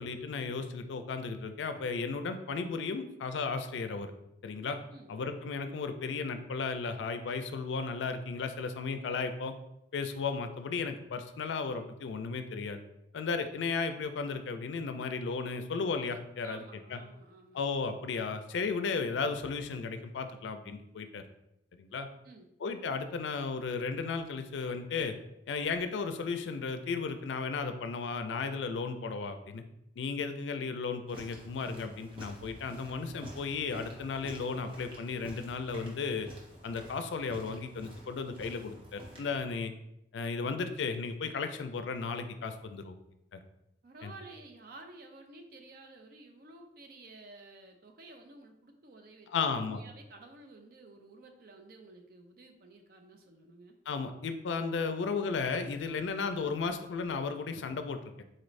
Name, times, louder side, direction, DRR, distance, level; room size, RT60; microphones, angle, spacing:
voice 1, 0.0-4.1 4.4-4.8 5.1-9.5 9.9-12.8 13.1-16.6 16.9-17.0 17.5-21.2 21.7-22.1 22.6-25.2 25.5-29.6 30.0-36.3 36.6-39.7 40.1-43.0 43.3-43.4 44.0-44.1 49.3-49.8 53.9-58.1, left 4 dB, 90° left, 8 dB, 0.4 m, -34 dB
voice 2, 16.4-17.6 22.2-22.5 43.8-53.8, right 2 dB, 55° right, 4 dB, 0.5 m, -52 dB
sound 1, 31.1-39.4, right 1 dB, 30° right, 0.8 m, -50 dB
4.1 x 2.5 x 3.1 m, 0.83 s
head